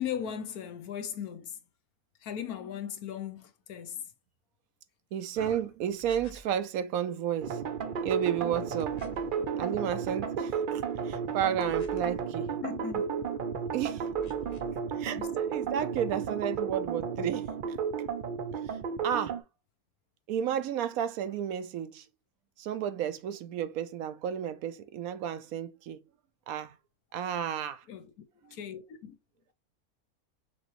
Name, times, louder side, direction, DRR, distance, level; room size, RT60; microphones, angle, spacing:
voice 1, 0.0-1.6 2.2-4.0 5.4-5.6 12.6-13.0 15.2-15.3 27.9-28.1 28.5-29.1, left 9 dB, 75° left, 1.3 m, -37 dB
voice 2, 5.1-7.6 8.0-9.0 9.6-12.6 13.7-14.1 15.0-17.8 18.7-18.8 19.0-19.4 20.3-22.1 22.6-26.0 26.5-26.8 27.1-27.8, right 9 dB, 75° right, 1.0 m, -32 dB
sound 1, 6.0-6.6 8.8-9.4 11.6-12.3 14.1-14.8, equal, 55° left, 0.4 m, -50 dB
sound 2, 7.4-19.4, right 6 dB, 55° right, 0.5 m, -33 dB
5.8 x 3.0 x 3.0 m
omnidirectional pair, 1.6 m